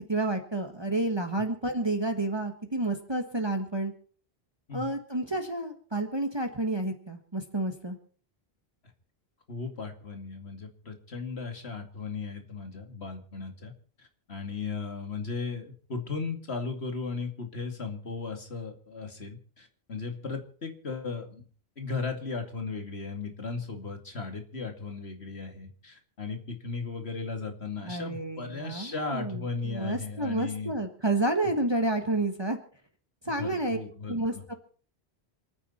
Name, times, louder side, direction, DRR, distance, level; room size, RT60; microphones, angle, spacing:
voice 1, 0.1-3.9 4.7-8.0 27.8-32.6 33.2-33.8 34.1-34.5, right 2 dB, 25° right, 5 dB, 1.6 m, -30 dB
voice 2, 9.5-13.7 14.0-21.5 21.8-30.7 33.4-34.4, left 4 dB, 85° left, 5 dB, 2.7 m, -36 dB
27.5 x 9.9 x 4.3 m, 0.43 s
omnidirectional pair, 1.1 m